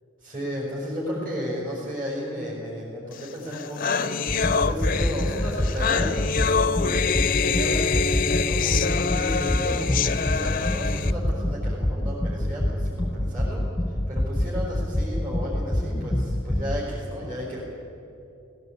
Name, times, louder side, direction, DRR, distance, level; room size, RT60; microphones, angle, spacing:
voice 1, 0.2-4.0 4.5-6.5 6.8-13.6 14.1-17.6, equal, 40° right, -6 dB, 4.8 m, -33 dB
sound 1, 3.2-3.3 3.5-11.1, left 5 dB, 40° left, 0.5 m, -25 dB
sound 2, 4.3-16.9, left 1 dB, 5° left, 0.9 m, -26 dB
18.0 x 17.0 x 8.6 m, 2.8 s
head